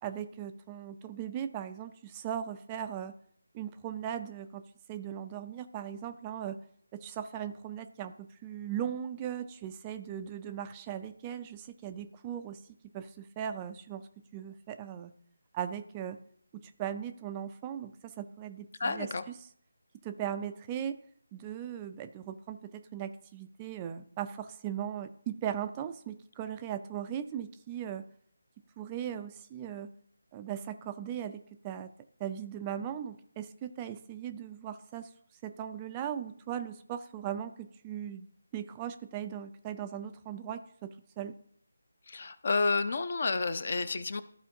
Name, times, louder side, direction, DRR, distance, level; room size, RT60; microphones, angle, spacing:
voice 1, 0.0-3.1 3.5-6.6 6.9-12.6 12.9-14.0 14.3-15.1 15.5-16.2 16.6-19.3 20.0-21.0 21.3-28.0 28.8-29.9 30.3-31.9 32.2-35.1 35.4-38.3 38.5-41.4, right 9 dB, 15° right, 8 dB, 0.4 m, -38 dB
voice 2, 18.8-19.2 42.1-44.2, left 4 dB, 45° left, 13 dB, 0.6 m, -30 dB
14.0 x 4.9 x 2.8 m, 0.63 s
figure-of-eight pair, 155°, 0 cm